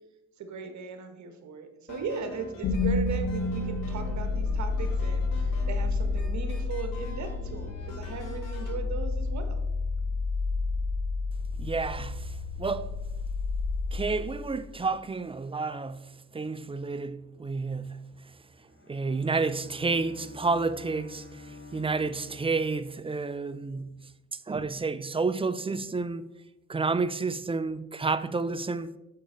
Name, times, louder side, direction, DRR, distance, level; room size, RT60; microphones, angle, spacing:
voice 1, 0.4-9.6, right 5 dB, 60° right, 1.3 m, -38 dB
sound 1, 1.9-8.8, left 2 dB, 80° left, 1.5 m, -46 dB
sound 2, 2.6-14.7, left 3 dB, 60° left, 1.4 m, -30 dB
voice 2, 11.6-12.9 13.9-18.1 18.9-24.0 24.5-26.3 26.7-28.9, right 4 dB, 15° right, 0.4 m, -30 dB
Bowed string instrument, 18.6-23.3, left 2 dB, 35° left, 1.2 m, -48 dB
6.7 x 6.3 x 3.9 m
supercardioid pair, 55°, 32 cm